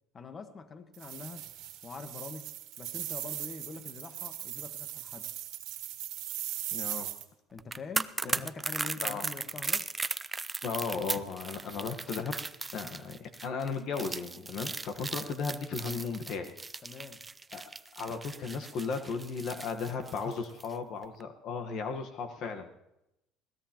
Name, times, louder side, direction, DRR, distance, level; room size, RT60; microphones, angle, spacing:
voice 1, 0.1-1.5 1.8-2.5 2.8-5.3 7.5-9.9 16.8-17.2, left 4 dB, 35° left, 8 dB, 1.3 m, -44 dB
sound 1, 0.9-7.2, right 13 dB, 70° right, 1.7 m, -39 dB
voice 2, 6.7-7.1 8.3-8.5 9.0-9.2 10.6-12.4 12.7-16.5 17.5-17.6 18.0-22.7, left 5 dB, 60° left, 6 dB, 1.3 m, -35 dB
sound 2, 7.6-20.7 21.0-21.2, right 3 dB, 20° right, 0.5 m, -37 dB
21.5 x 16.5 x 3.0 m, 0.88 s
supercardioid pair, 95°, 0 cm